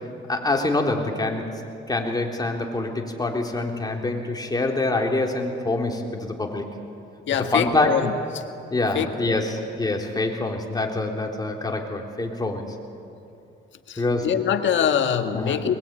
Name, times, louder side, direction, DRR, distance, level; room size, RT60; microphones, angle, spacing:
voice 1, 0.3-1.4 1.9-6.6 7.5-7.9 8.7-12.7 14.0-14.3 15.3-15.6, left 2 dB, 20° left, 1 dB, 3.6 m, -25 dB
voice 2, 7.3-8.4 8.9-9.5 13.9-15.7, left 8 dB, 70° left, 7 dB, 1.7 m, -24 dB
22.0 x 21.5 x 8.9 m, 2.7 s
cardioid pair, 90°, 20 cm